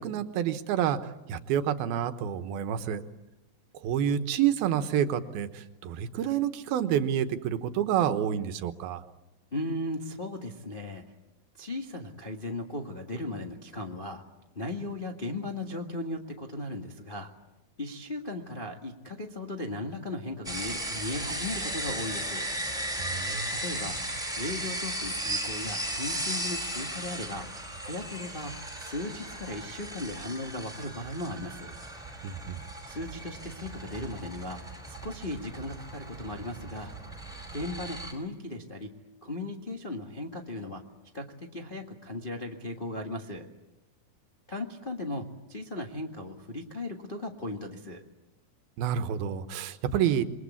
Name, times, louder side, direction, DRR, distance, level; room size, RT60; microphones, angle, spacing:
voice 1, 0.0-3.0 3.8-9.0 23.0-23.5 32.2-32.6 48.8-50.2, right 9 dB, 80° right, 9 dB, 3.0 m, -28 dB
voice 2, 9.5-11.0 11.6-14.2 14.5-17.3 17.8-22.5 23.5-24.0 24.4-27.5 27.8-31.7 32.9-36.9 37.5-38.9 39.2-40.8 41.1-43.5 44.5-48.0, left 1 dB, 40° left, 0 dB, 0.7 m, -37 dB
sound 1, 20.4-38.1, right 1 dB, ahead, 4.4 m, -36 dB
27.5 x 22.5 x 8.5 m, 0.97 s
omnidirectional pair, 4.3 m